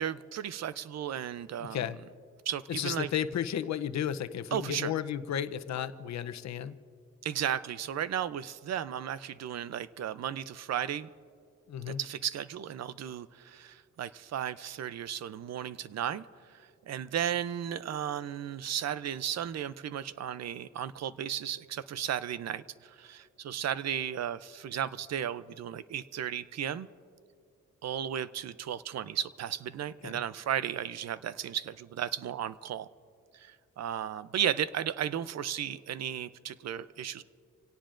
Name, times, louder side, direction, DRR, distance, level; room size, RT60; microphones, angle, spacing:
voice 1, 0.0-1.9 2.5-3.1 4.5-4.9 7.2-11.1 11.8-16.3 16.9-26.9 27.8-32.9 33.3-37.2, right 9 dB, 60° right, 15 dB, 0.6 m, -34 dB
voice 2, 1.6-2.0 2.7-6.8 11.7-12.0 30.0-30.2, left 9 dB, 65° left, 11 dB, 0.7 m, -33 dB
28.0 x 17.5 x 2.6 m, 2.4 s
cardioid pair, 110°, 29 cm